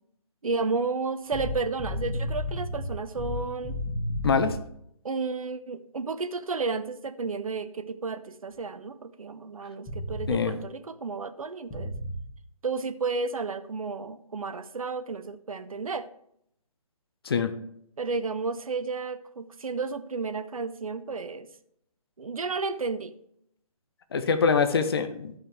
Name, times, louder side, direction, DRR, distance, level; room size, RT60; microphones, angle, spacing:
voice 1, 0.4-3.8 5.0-11.9 12.6-16.1 18.0-21.5 22.2-23.1, right 4 dB, 65° right, 11 dB, 0.7 m, -32 dB
sound 1, 1.3-4.6 9.9-10.3 11.7-12.2, left 1 dB, 15° left, 1.9 m, -32 dB
voice 2, 4.2-4.6 10.3-10.5 17.2-17.5 24.1-25.3, left 5 dB, 40° left, 9 dB, 0.7 m, -24 dB
11.5 x 5.7 x 3.3 m, 0.73 s
figure-of-eight pair, 145°, 19 cm